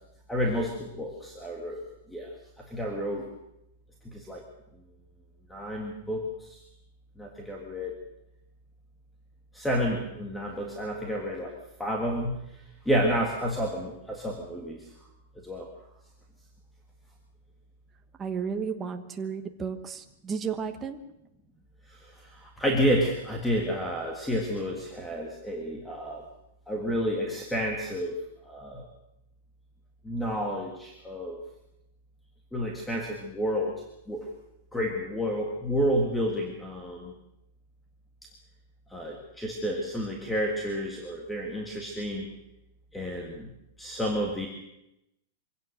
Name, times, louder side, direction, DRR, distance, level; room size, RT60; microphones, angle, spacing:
voice 1, 0.3-1.8 2.1-3.3 4.0-4.4 5.5-6.6 7.2-8.0 9.5-11.5 11.8-14.9 15.4-15.7 21.9-26.3 26.7-28.1 28.4-28.8 30.0-31.4 32.5-34.3 34.7-37.1 38.9-42.3 42.9-44.5, equal, 5° left, 1 dB, 1.8 m, -30 dB
voice 2, 18.2-21.0, right 6 dB, 15° right, 6 dB, 1.2 m, -33 dB
24.0 x 17.0 x 6.5 m, 0.85 s
supercardioid pair, 175°, 0 cm